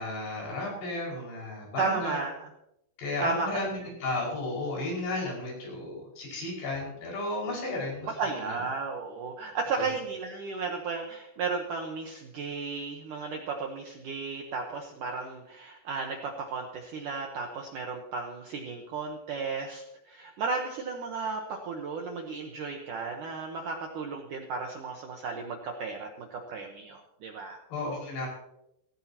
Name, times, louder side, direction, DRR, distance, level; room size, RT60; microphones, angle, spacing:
voice 1, 0.0-2.2 3.0-3.7 4.0-8.1 8.4-8.5 9.8-9.9 27.7-28.3, left 2 dB, 65° left, -3 dB, 7.5 m, -33 dB
voice 2, 1.8-2.5 3.2-3.5 8.0-27.6, right 4 dB, 70° right, 2 dB, 2.0 m, -34 dB
18.0 x 16.0 x 2.9 m, 0.82 s
omnidirectional pair, 5.2 m